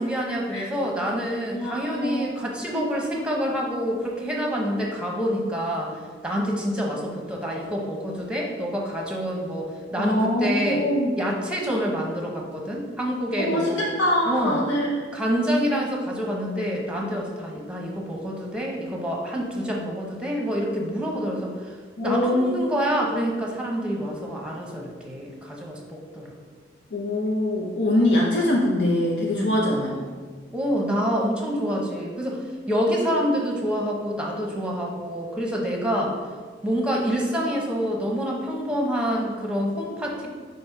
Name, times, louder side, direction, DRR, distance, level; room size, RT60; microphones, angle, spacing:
voice 1, 0.0-10.8 11.2-13.8 14.3-14.6 15.1-21.7 22.0-26.3 29.3-29.5 30.5-32.4 32.7-36.2 36.6-40.3, equal, 5° right, -1 dB, 0.9 m, -27 dB
voice 2, 1.5-2.3 10.0-11.1 13.4-14.9 22.0-22.6 26.9-30.1, left 1 dB, 70° left, -2 dB, 0.7 m, -23 dB
5.1 x 4.2 x 4.4 m, 1.5 s
head